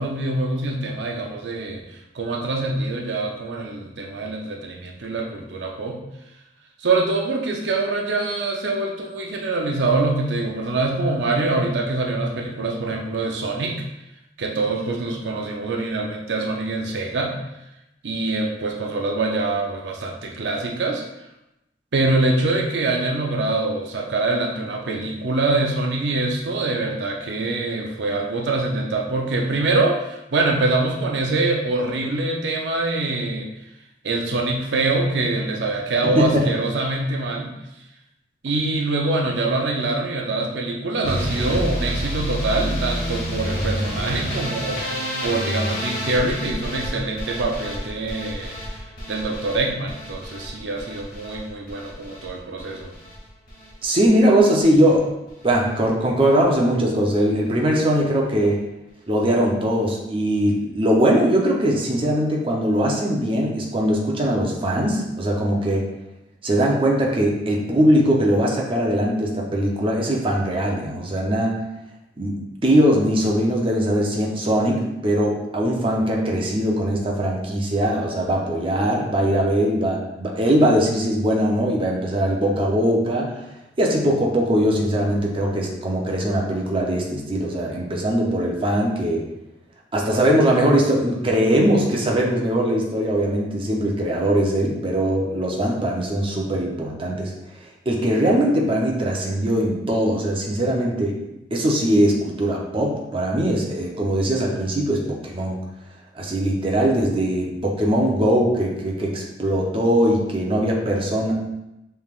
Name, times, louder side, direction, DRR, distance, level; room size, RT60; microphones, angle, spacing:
voice 1, 0.0-6.0 6.8-13.9 14.4-17.4 18.0-21.0 21.9-33.5 34.0-37.6 38.4-48.6 49.1-52.9, right 2 dB, 80° right, 1 dB, 0.6 m, -24 dB
voice 2, 36.0-36.4 53.8-55.1 55.4-58.6 59.1-65.9 66.4-71.6 72.2-83.4 83.8-89.3 89.9-97.3 97.9-101.2 101.5-105.6 106.2-111.3, right 1 dB, 30° right, -2 dB, 0.7 m, -21 dB
sound 1, 41.0-53.2 53.5-54.1 54.4-55.0 55.3-55.5 55.8-55.9 56.2-56.3, equal, 55° left, 1.3 m, -29 dB
5.4 x 3.4 x 2.4 m, 0.90 s
head